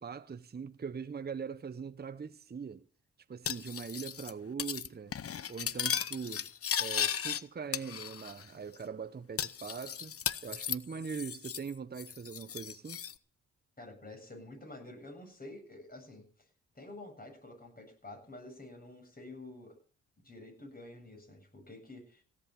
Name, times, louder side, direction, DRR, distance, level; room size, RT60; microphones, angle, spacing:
voice 1, 0.0-2.8 3.3-5.2 5.5-6.5 6.8-10.1 10.4-13.0, right 6 dB, 30° right, 0.9 m, -41 dB
Cutlery silverware, 3.5-4.3 4.6-4.9 5.1-7.4 7.7-8.4 8.7-8.8 9.4-11.7 12.0-13.1, left 8 dB, 45° left, 0.8 m, -36 dB
voice 2, 13.8-16.5 16.7-19.8 20.2-22.2, left 2 dB, 30° left, 7.5 m, -49 dB
17.0 x 8.5 x 7.1 m
hypercardioid pair, 45°, 32 cm